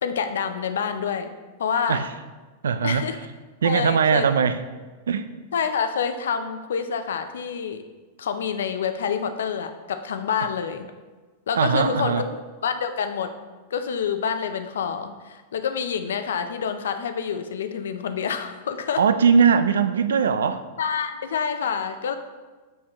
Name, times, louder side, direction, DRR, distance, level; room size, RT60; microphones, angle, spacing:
voice 1, 0.0-1.3 1.6-2.0 2.8-3.2 3.6-4.3 5.5-7.8 8.2-10.9 11.5-13.3 13.7-19.0 20.8-22.2, left 7 dB, 80° left, 9 dB, 0.5 m, -27 dB
voice 2, 2.6-3.1 3.6-4.6 5.1-5.3 11.5-12.3 19.0-20.6, right 6 dB, 85° right, 12 dB, 0.4 m, -20 dB
6.3 x 5.9 x 3.0 m, 1.3 s
hypercardioid pair, 115°, 0 cm